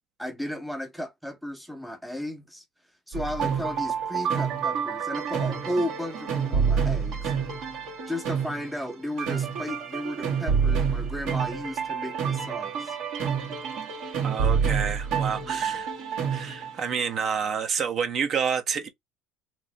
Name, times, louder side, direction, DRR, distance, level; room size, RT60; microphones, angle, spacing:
voice 1, 0.2-2.6 3.1-7.3 8.1-13.0 15.2-15.8, equal, ahead, 0.7 m, -34 dB
sound 1, 3.1-17.1, right 6 dB, 65° right, 1.6 m, -28 dB
voice 2, 14.2-15.9 16.3-18.9, right 7 dB, 45° right, 0.9 m, -29 dB
3.0 x 2.1 x 4.1 m
supercardioid pair, 90°, 0 cm